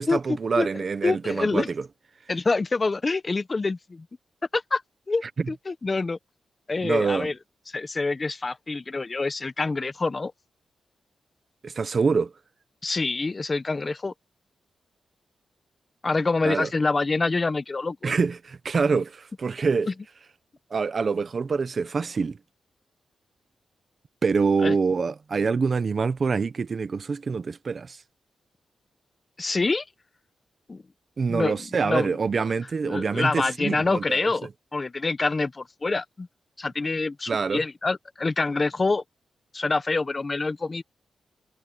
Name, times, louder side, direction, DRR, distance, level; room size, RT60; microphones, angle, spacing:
voice 1, 0.0-1.9 5.4-5.5 6.8-7.3 11.6-12.3 16.4-16.7 18.0-19.9 20.7-22.4 24.2-28.0 31.2-34.3 37.3-37.6, right 5 dB, 40° right, 0.9 m, -25 dB
voice 2, 0.6-1.7 2.3-4.0 4.5-4.8 5.1-6.2 6.7-7.3 7.7-10.3 12.8-14.1 16.0-18.1 24.6-24.7 29.4-29.8 30.7-30.8 31.3-31.5 31.8-32.2 32.8-36.3 36.6-39.0 39.5-40.8, left 3 dB, 25° left, 1.0 m, -26 dB
wide cardioid pair, 140°, 0 cm